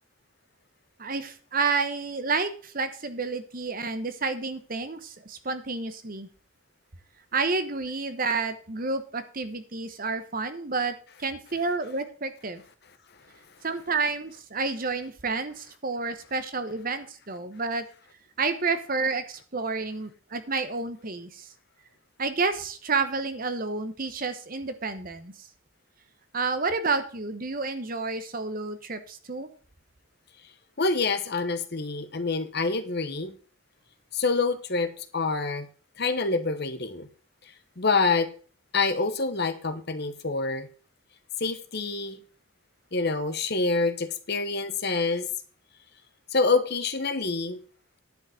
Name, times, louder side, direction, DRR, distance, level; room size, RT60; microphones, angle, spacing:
voice 1, 1.0-6.3 7.3-12.6 13.6-17.8 18.4-21.5 22.2-25.5 26.3-29.5, right 4 dB, 40° right, 10 dB, 1.1 m, -30 dB
voice 2, 30.8-33.3 34.1-35.7 36.0-37.1 37.8-38.3 38.7-40.7 41.4-42.2 42.9-45.3 46.3-47.6, left 3 dB, 50° left, 9 dB, 1.1 m, -26 dB
10.5 x 5.4 x 7.7 m, 0.40 s
head